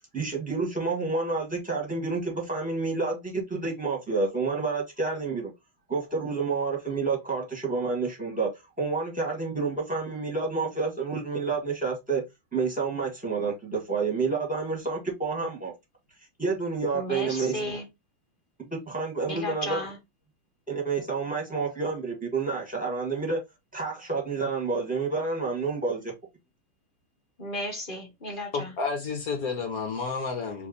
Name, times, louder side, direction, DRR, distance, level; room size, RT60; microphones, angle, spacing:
voice 1, 0.1-5.5 5.9-12.2 12.5-15.7 16.4-17.6 18.6-19.8 20.7-23.4 23.7-26.1, right 4 dB, 5° right, 1.3 m, -29 dB
voice 2, 16.9-17.8 19.2-20.0 27.4-28.7, left 1 dB, 35° left, 1.0 m, -34 dB
voice 3, 28.5-30.7, left 4 dB, 55° left, 1.1 m, -31 dB
3.4 x 3.1 x 3.9 m
omnidirectional pair, 2.3 m